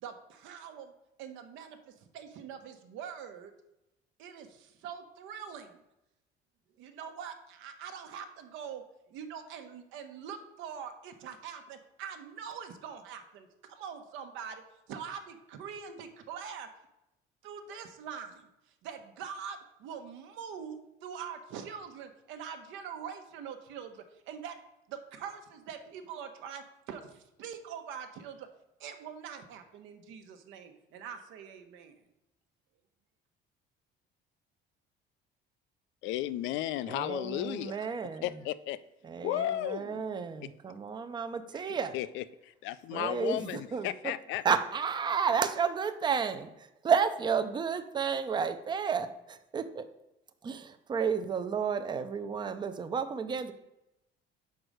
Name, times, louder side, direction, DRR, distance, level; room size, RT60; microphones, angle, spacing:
voice 1, 0.0-0.9 1.2-3.5 4.2-5.8 6.8-16.7 17.4-24.6 24.9-28.5 28.8-32.0, right 7 dB, 75° right, 7 dB, 1.0 m, -44 dB
voice 2, 36.0-37.8 38.2-38.8 39.2-40.1 41.6-44.4, left 14 dB, 75° left, 15 dB, 0.4 m, -34 dB
voice 3, 36.9-38.2 39.1-41.9 42.9-44.1 44.4-49.9 50.4-53.5, right 6 dB, 20° right, 10 dB, 0.5 m, -31 dB
5.3 x 4.7 x 6.3 m, 0.90 s
cardioid pair, 140°, 20 cm